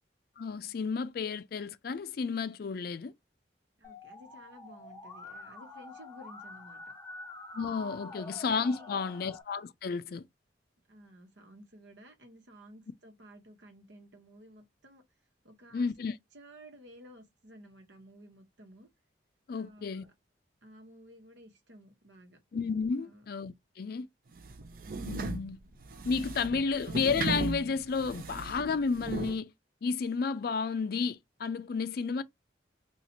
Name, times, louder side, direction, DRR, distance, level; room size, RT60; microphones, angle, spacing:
voice 1, 0.4-3.1 7.5-10.2 15.7-16.1 19.5-20.0 22.5-24.1 25.0-25.6 26.0-29.5 29.8-32.2, left 5 dB, 55° left, 0.4 m, -32 dB
Musical instrument, 3.8-9.4, left 2 dB, 15° left, 0.6 m, -47 dB
voice 2, 3.8-6.8 7.7-8.1 8.4-8.9 10.9-15.0 15.4-15.9 16.3-18.9 19.6-20.1 20.6-22.4 23.1-23.3 25.6-25.7 26.3-26.9, equal, 75° right, 1.0 m, -54 dB
sound 1, 24.4-29.4, right 3 dB, 50° right, 0.5 m, -37 dB
2.8 x 2.4 x 4.2 m
head